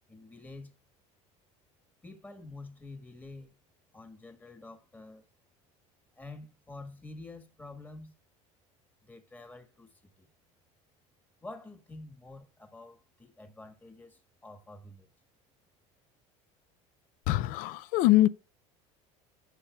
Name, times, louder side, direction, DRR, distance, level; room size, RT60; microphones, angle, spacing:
voice 1, 0.1-0.7 2.0-3.5 3.9-5.2 6.1-8.1 9.0-10.3 11.4-15.1, left 2 dB, 10° left, 1.5 m, -48 dB
voice 2, 17.3-18.3, left 16 dB, 65° left, 0.5 m, -23 dB
13.0 x 5.8 x 2.3 m
supercardioid pair, 120°, 15 cm